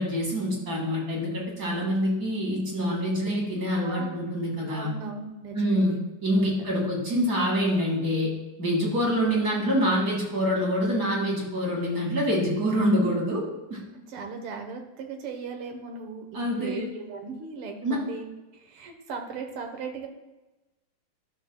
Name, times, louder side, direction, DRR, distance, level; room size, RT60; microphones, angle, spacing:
voice 1, 0.0-4.9 5.5-5.9 6.2-8.3 8.6-13.8 16.3-16.9 17.8-18.0, equal, 45° right, -2 dB, 2.3 m, -26 dB
voice 2, 3.7-4.2 4.7-6.0 14.1-20.1, right 4 dB, 80° right, 4 dB, 1.9 m, -38 dB
11.0 x 6.3 x 2.2 m, 1.1 s
omnidirectional pair, 2.4 m